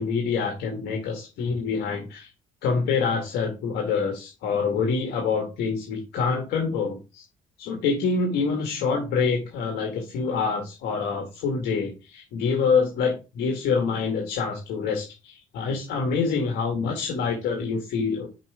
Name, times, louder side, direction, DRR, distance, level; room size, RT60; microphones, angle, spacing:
voice 1, 0.0-2.3 2.6-7.2 7.6-18.3, left 5 dB, 80° left, 2 dB, 1.8 m, -26 dB
6.0 x 4.8 x 4.7 m, 0.29 s
cardioid pair, 110°, 17 cm